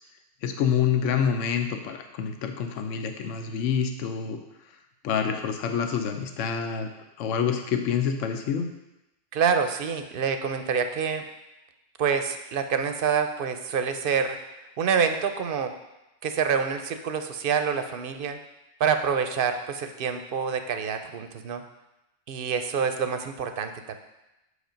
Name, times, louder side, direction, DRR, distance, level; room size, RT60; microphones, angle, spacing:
voice 1, 0.4-4.4 5.0-6.9 7.2-8.7, left 7 dB, 80° left, 6 dB, 1.0 m, -27 dB
voice 2, 9.3-11.2 12.0-14.4 14.8-15.7 16.2-18.4 18.8-21.6 22.3-23.9, right 6 dB, 60° right, 7 dB, 0.6 m, -27 dB
6.5 x 5.1 x 5.1 m, 0.96 s
omnidirectional pair, 1.3 m